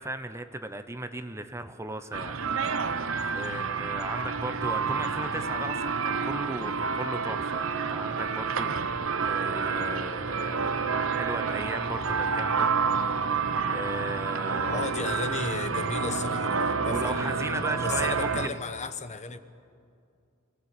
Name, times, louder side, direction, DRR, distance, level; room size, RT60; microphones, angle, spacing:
voice 1, 0.0-2.4 2.7-2.9 3.3-12.7 13.7-14.9 16.8-18.6, right 2 dB, 15° right, 9 dB, 0.9 m, -36 dB
sound 1, 2.1-18.5, right 5 dB, 90° right, 1.1 m, -29 dB
voice 2, 3.3-3.7 14.7-19.4, left 4 dB, 35° left, 10 dB, 1.1 m, -35 dB
28.0 x 18.0 x 8.6 m, 2.4 s
head